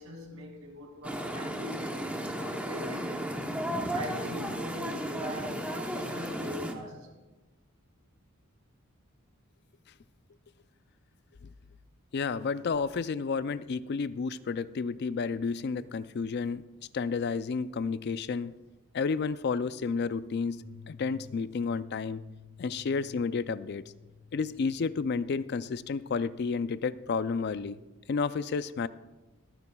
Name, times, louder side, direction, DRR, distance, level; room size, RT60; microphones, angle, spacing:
voice 1, 0.0-7.1, equal, 80° right, 2.5 m, -42 dB
sound 1, 1.0-6.7, equal, 5° right, 0.8 m, -34 dB
voice 2, 12.1-16.6 16.9-18.5 18.9-22.2 22.6-23.8 24.3-27.8 28.1-28.9, left 5 dB, 50° left, 0.4 m, -31 dB
sound 2, 20.6-27.3, left 5 dB, 15° left, 2.1 m, -53 dB
25.5 x 9.5 x 2.3 m
head